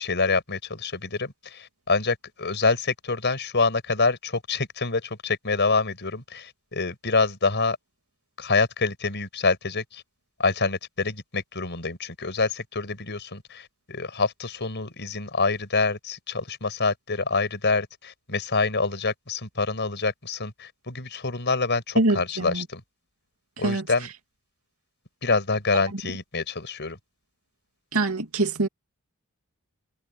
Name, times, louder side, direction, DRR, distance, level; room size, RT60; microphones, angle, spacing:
voice 1, 0.0-7.8 8.4-10.0 10.4-22.8 23.6-24.1 25.2-27.0, left 4 dB, 55° left, 5.9 m, -26 dB
voice 2, 22.0-22.6 23.6-23.8 27.9-28.7, right 2 dB, 75° right, 2.5 m, -24 dB
head